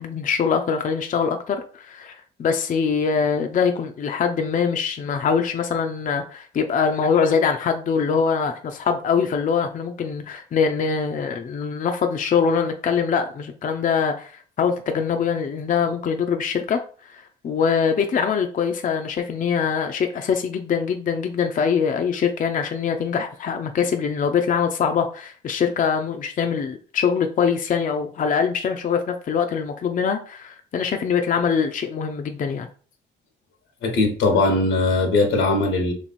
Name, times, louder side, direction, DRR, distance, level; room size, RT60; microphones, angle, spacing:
voice 1, 0.0-14.3 14.6-32.7, left 6 dB, 45° left, 5 dB, 0.5 m, -23 dB
voice 2, 33.8-35.9, left 2 dB, 90° left, 4 dB, 1.1 m, -20 dB
3.1 x 3.1 x 4.1 m, 0.41 s
cardioid pair, 90°, 20 cm